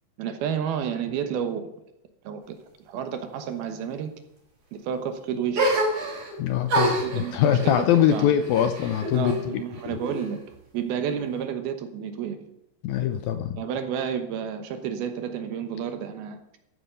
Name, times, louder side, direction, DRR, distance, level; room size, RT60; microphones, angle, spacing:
voice 1, 0.2-1.7 2.2-2.6 2.9-4.1 4.7-5.8 7.0-8.3 9.1-10.4 10.7-12.5 13.6-16.6, right 8 dB, 70° right, 8 dB, 2.9 m, -31 dB
sound 1, 5.5-6.3 6.7-9.4 9.7-10.6, right 1 dB, 45° right, 5.7 m, -27 dB
voice 2, 6.4-9.6 9.9-10.0 12.8-13.6, left 10 dB, 75° left, 9 dB, 2.2 m, -23 dB
13.5 x 9.5 x 6.8 m, 0.84 s
omnidirectional pair, 4.8 m